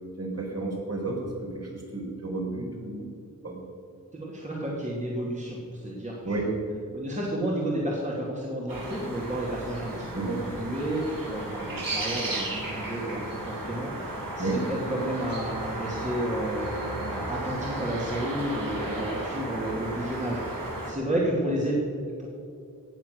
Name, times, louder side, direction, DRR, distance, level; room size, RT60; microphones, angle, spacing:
voice 1, 0.2-3.1 3.4-3.6 6.2-6.5 10.1-10.4 14.4-14.7, right 2 dB, 45° right, -2 dB, 4.1 m, -31 dB
voice 2, 4.1-6.5 6.9-10.1 10.6-22.3, right 1 dB, 20° right, -4 dB, 2.4 m, -31 dB
sound 1, 8.7-20.9, right 2 dB, 80° right, 3.2 m, -34 dB
18.0 x 7.4 x 6.3 m, 2.5 s
wide cardioid pair, 85°, 33 cm